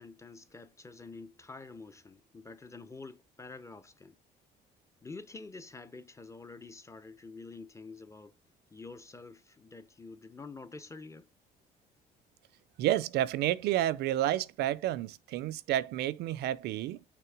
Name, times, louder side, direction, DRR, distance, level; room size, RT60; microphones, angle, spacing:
voice 1, 0.0-4.2 5.0-8.4 8.7-11.3, left 3 dB, 15° left, 0.7 m, -48 dB
voice 2, 12.8-17.0, right 13 dB, 75° right, 0.5 m, -30 dB
6.0 x 3.4 x 4.7 m
cardioid pair, 110°, 17 cm